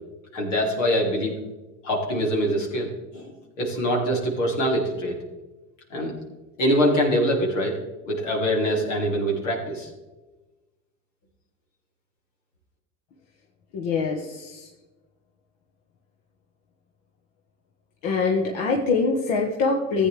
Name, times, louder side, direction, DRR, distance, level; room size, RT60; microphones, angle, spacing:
voice 1, 0.3-1.4 1.8-3.3 3.6-5.1 5.9-6.1 6.6-7.8 8.1-9.9, equal, 85° left, -1 dB, 3.0 m, -24 dB
voice 2, 13.7-14.7 18.0-20.1, left 4 dB, 70° left, 0 dB, 1.5 m, -24 dB
14.5 x 8.8 x 3.4 m, 1.1 s
hypercardioid pair, 80°, 36 cm